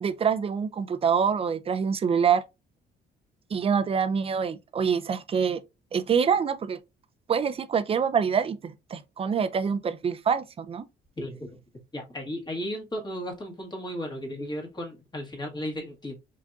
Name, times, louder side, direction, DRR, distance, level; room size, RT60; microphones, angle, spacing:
voice 1, 0.0-2.4 3.5-5.6 5.9-6.8 7.3-10.8, right 6 dB, 30° right, 0.4 m, -25 dB
voice 2, 11.2-11.6 11.9-16.1, equal, 25° left, 1.7 m, -35 dB
5.0 x 4.0 x 2.4 m
cardioid pair, 130°, 19 cm